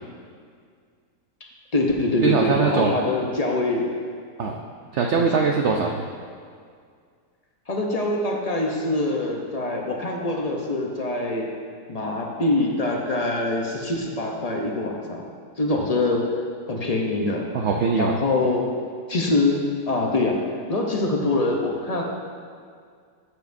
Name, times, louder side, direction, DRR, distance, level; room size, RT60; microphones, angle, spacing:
voice 1, 1.7-3.9 4.4-4.5 7.7-11.5 11.9-15.2 15.6-16.3 16.7-17.5 17.9-18.7 19.1-20.4 20.7-22.0, left 2 dB, 40° left, 0 dB, 0.5 m, -24 dB
voice 2, 2.2-3.0 4.4-4.5 4.9-6.0 17.5-18.2, right 5 dB, 70° right, 2 dB, 0.6 m, -22 dB
13.5 x 7.3 x 2.6 m, 2.1 s
omnidirectional pair, 1.8 m